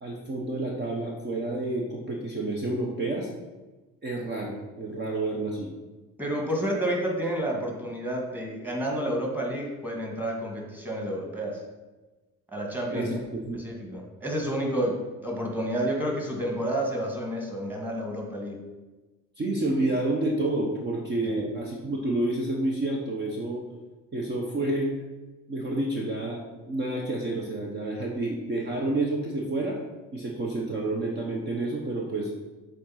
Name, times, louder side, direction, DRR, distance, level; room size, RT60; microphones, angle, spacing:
voice 1, 0.0-3.3 4.0-5.7 12.9-13.6 19.4-23.6 24.1-24.9 25.5-29.8 30.1-32.3, right 2 dB, 30° right, -1 dB, 1.2 m, -29 dB
voice 2, 6.2-11.6 12.5-13.1 13.5-18.6 21.2-21.4, right 1 dB, 5° right, -1 dB, 2.0 m, -30 dB
7.3 x 4.0 x 5.8 m, 1.2 s
cardioid pair, 105°, 33 cm